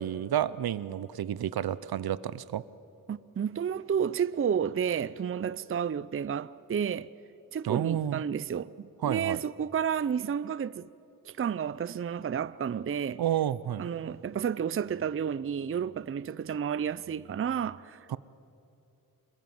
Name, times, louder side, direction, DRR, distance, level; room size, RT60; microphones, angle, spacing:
voice 1, 0.0-2.6 7.6-8.2 9.0-9.4 13.2-13.9 18.1-18.2, right 10 dB, 80° right, 0.6 m, -30 dB
voice 2, 3.1-7.1 7.5-10.9 11.3-13.2 13.8-18.2, right 7 dB, 35° right, 0.5 m, -31 dB
26.5 x 21.5 x 7.8 m
wide cardioid pair, 85°, 37 cm